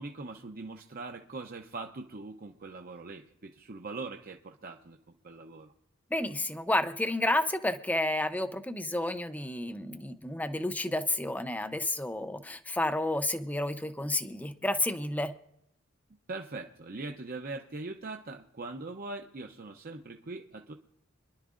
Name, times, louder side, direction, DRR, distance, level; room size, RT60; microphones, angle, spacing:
voice 1, 0.0-5.0 5.2-5.7 16.3-20.7, right 3 dB, 45° right, 3 dB, 0.7 m, -41 dB
voice 2, 6.1-15.3, left 1 dB, 10° left, 9 dB, 0.6 m, -31 dB
25.5 x 11.0 x 2.5 m, 0.75 s
head